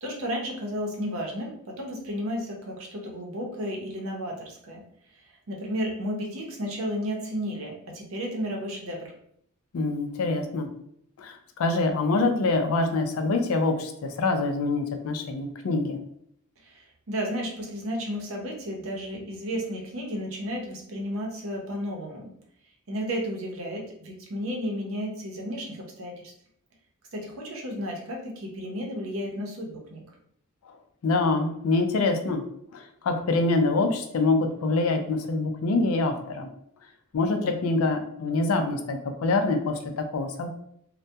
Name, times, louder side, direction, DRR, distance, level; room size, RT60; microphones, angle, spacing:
voice 1, 0.0-4.8 5.5-9.1 16.6-16.8 17.1-22.3 22.9-26.1 27.1-30.0, equal, 70° right, 0 dB, 0.6 m, -33 dB
voice 2, 9.7-10.7 11.2-16.0 31.0-32.4 32.7-36.5 37.1-40.5, left 3 dB, 85° left, 6 dB, 0.4 m, -25 dB
2.2 x 2.1 x 2.7 m, 0.70 s
head